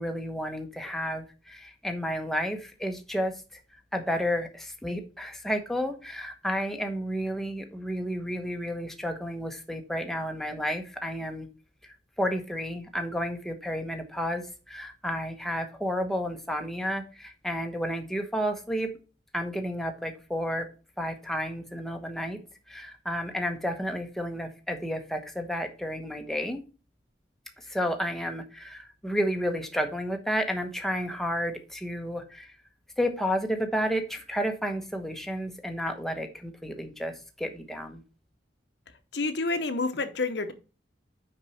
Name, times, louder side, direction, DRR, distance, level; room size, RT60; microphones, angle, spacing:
voice 1, 0.0-3.4 3.9-11.5 11.8-18.9 19.3-20.7 21.0-22.4 22.7-26.6 27.7-32.5 33.0-38.0, equal, ahead, 4 dB, 1.0 m, -31 dB
voice 2, 39.1-40.5, left 3 dB, 65° left, 10 dB, 0.9 m, -28 dB
6.2 x 5.3 x 5.6 m, 0.33 s
head